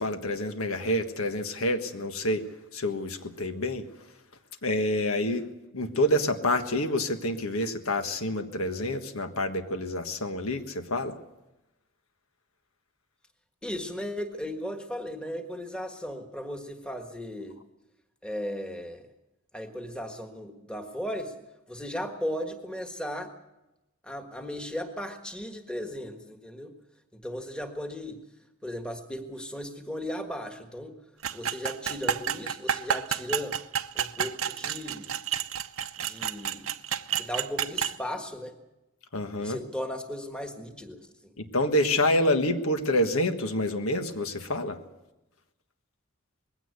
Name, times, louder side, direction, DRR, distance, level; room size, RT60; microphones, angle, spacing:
voice 1, 0.0-2.5 2.7-3.8 4.6-5.5 5.7-11.2 39.1-39.6 41.4-44.8, left 1 dB, 85° left, 7 dB, 1.5 m, -27 dB
voice 2, 13.6-17.6 18.2-19.0 19.5-21.3 21.7-23.3 24.0-26.7 27.1-28.2 28.6-31.0 31.3-33.6 33.9-35.1 36.0-36.7 37.1-38.5 39.4-41.3, equal, 5° left, 5 dB, 1.5 m, -36 dB
sound 1, 31.2-38.0, right 8 dB, 80° right, 0.8 m, -30 dB
20.5 x 16.5 x 8.2 m, 0.97 s
head